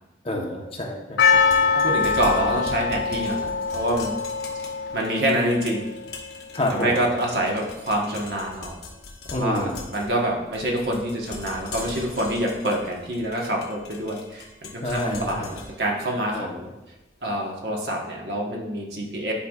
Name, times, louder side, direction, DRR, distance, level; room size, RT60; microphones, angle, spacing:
voice 1, 0.2-1.3 1.6-1.7 6.5-7.0 9.3-9.8 14.8-15.6 16.3-16.6, left 1 dB, 35° left, -1 dB, 1.0 m, -28 dB
Percussion, 1.2-6.1, left 5 dB, 85° left, 0.7 m, -23 dB
sound 1, 1.3-17.3, left 3 dB, 65° left, 1.0 m, -41 dB
voice 2, 1.7-4.2 4.9-5.9 6.7-8.8 9.3-16.7 17.2-19.3, right 1 dB, 70° right, -1 dB, 1.3 m, -26 dB
11.0 x 4.7 x 2.4 m, 1.0 s
head